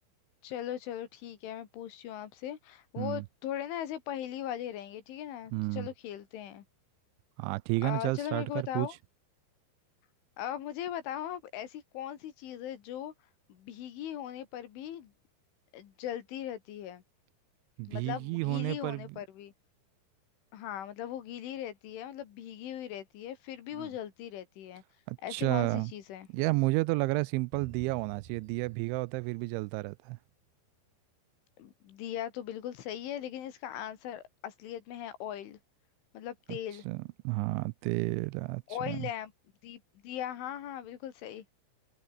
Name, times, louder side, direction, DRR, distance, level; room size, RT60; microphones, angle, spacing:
voice 1, 0.4-6.6 7.8-8.9 10.4-13.1 13.5-15.1 15.7-17.0 17.9-19.5 20.5-24.8 25.2-26.3 31.6-35.6 36.1-36.9 38.7-39.3 39.6-41.5, left 11 dB, 80° left, 4.8 m, -39 dB
voice 2, 5.5-5.9 7.4-8.9 17.8-19.2 23.7-23.9 25.1-25.9 26.3-30.2 36.5-36.6 36.9-39.1, right 24 dB, 85° right, 2.8 m, -31 dB
sound 1, 27.5-30.3, right 7 dB, 55° right, 5.1 m, -52 dB
omnidirectional pair, 5.5 m